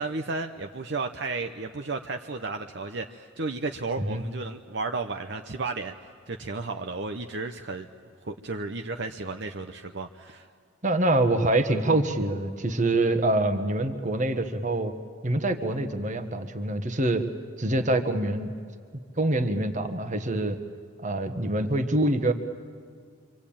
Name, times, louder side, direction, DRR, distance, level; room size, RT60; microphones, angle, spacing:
voice 1, 0.0-5.9 6.3-7.9 8.2-10.5, right 3 dB, 60° right, 5 dB, 0.8 m, -33 dB
voice 2, 10.8-14.9 15.2-17.2 17.6-18.5 19.2-20.6 21.0-22.3, right 2 dB, 40° right, 7 dB, 1.4 m, -25 dB
26.0 x 25.5 x 8.8 m, 2.1 s
head